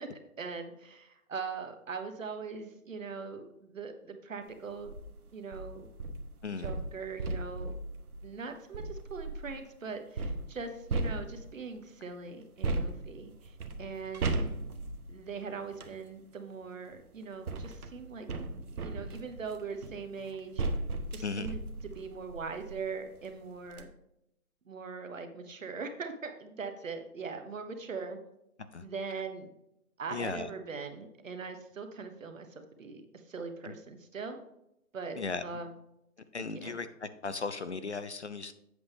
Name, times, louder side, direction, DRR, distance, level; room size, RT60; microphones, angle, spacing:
voice 1, 0.0-4.9 5.3-5.9 6.6-7.8 8.2-14.4 15.1-18.3 18.8-20.7 21.1-23.9 24.6-28.2 28.8-29.5 30.0-34.4 34.9-35.8 36.5-36.7, right 5 dB, 60° right, 6 dB, 1.3 m, -41 dB
sound 1, 4.7-5.0 5.5-9.6 10.2-11.7 12.6-16.0 16.9-22.9 23.3-23.4 23.7-23.8, right 2 dB, 80° right, 1.1 m, -37 dB
voice 2, 30.1-30.5 35.2-35.4 36.3-36.9 37.2-38.5, left 4 dB, 50° left, 12 dB, 0.4 m, -36 dB
8.0 x 6.7 x 3.5 m, 0.81 s
hypercardioid pair, 180°, 43 cm